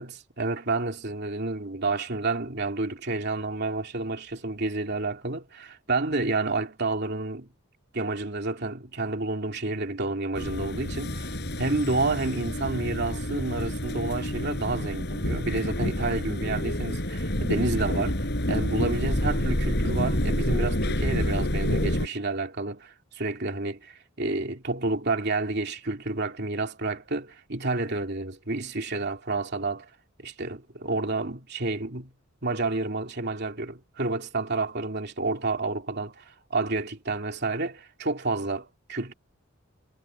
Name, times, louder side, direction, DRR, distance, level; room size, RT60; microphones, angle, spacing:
voice 1, 0.0-7.5 7.9-29.9 30.2-32.1 32.4-39.1, right 3 dB, 50° right, 2.9 m, -30 dB
sound 1, 10.3-22.1, equal, 50° left, 6.3 m, -28 dB
head